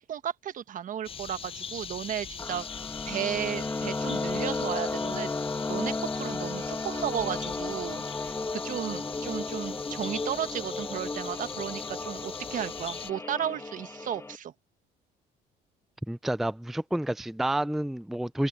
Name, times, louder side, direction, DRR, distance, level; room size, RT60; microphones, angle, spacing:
voice 1, 0.0-2.8 3.1-5.3 5.7-14.5, right 10 dB, 50° right, 1.2 m, -34 dB
sound 1, 1.0-13.1, left 7 dB, 35° left, 0.8 m, -41 dB
sound 2, 2.4-14.4, left 3 dB, 15° left, 1.9 m, -34 dB
voice 2, 16.1-18.5, right 1 dB, ahead, 0.5 m, -29 dB
open air
cardioid pair, 110°, 17 cm